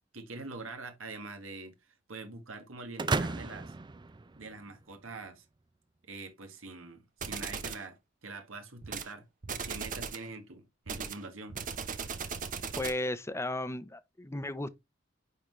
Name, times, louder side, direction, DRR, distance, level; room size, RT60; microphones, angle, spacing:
voice 1, 0.1-3.7 4.4-5.4 6.0-9.3 9.6-11.6, right 3 dB, 80° right, 1.6 m, -44 dB
sound 1, 3.0-4.9, right 3 dB, 20° right, 0.5 m, -34 dB
sound 2, 7.2-7.9 8.8-9.1 9.4-10.3 10.9-13.1, right 6 dB, 40° right, 0.9 m, -38 dB
voice 2, 12.8-14.7, left 1 dB, 15° left, 0.7 m, -34 dB
9.9 x 3.9 x 3.1 m
head